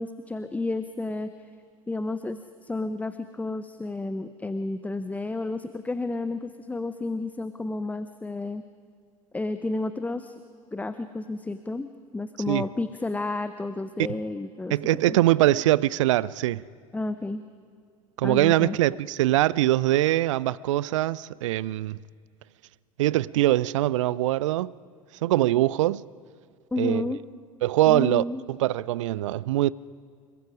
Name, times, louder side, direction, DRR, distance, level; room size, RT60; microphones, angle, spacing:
voice 1, 0.0-1.3 1.9-8.6 9.3-10.4 10.7-14.7 15.1-15.2 16.9-17.4 18.2-18.8 26.7-27.2 27.9-28.4, left 2 dB, 10° left, 0.7 m, -31 dB
voice 2, 14.7-16.6 18.2-22.0 23.0-24.7 25.2-26.0 26.8-27.1 27.6-29.7, right 15 dB, 60° right, 0.5 m, -23 dB
26.0 x 22.5 x 5.1 m
figure-of-eight pair, 75°, 18 cm